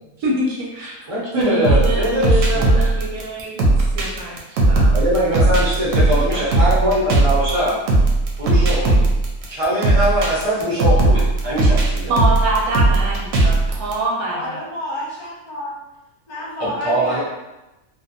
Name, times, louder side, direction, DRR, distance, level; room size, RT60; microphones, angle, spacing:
voice 1, 0.2-5.0 6.1-6.5 12.1-14.6, right 1 dB, 85° right, -3 dB, 1.1 m, -25 dB
voice 2, 1.1-2.7 4.9-7.8 8.4-9.1 9.5-12.1 16.6-17.2, equal, 45° right, -6 dB, 0.4 m, -22 dB
sound 1, 1.6-13.9, right 2 dB, 70° right, 0.9 m, -17 dB
voice 3, 14.3-15.7 16.3-17.2, left 1 dB, 50° left, -5 dB, 0.8 m, -30 dB
2.6 x 2.2 x 2.6 m, 0.99 s
omnidirectional pair, 1.6 m